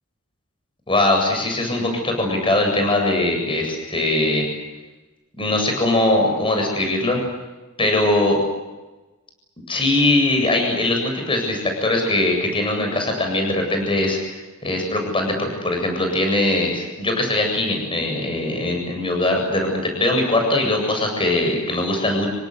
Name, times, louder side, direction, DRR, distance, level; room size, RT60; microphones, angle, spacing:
voice 1, 0.9-4.4 5.4-7.2 7.8-8.4 9.7-22.3, left 2 dB, 25° left, 3 dB, 8.0 m, -21 dB
28.0 x 24.5 x 8.3 m, 1.1 s
head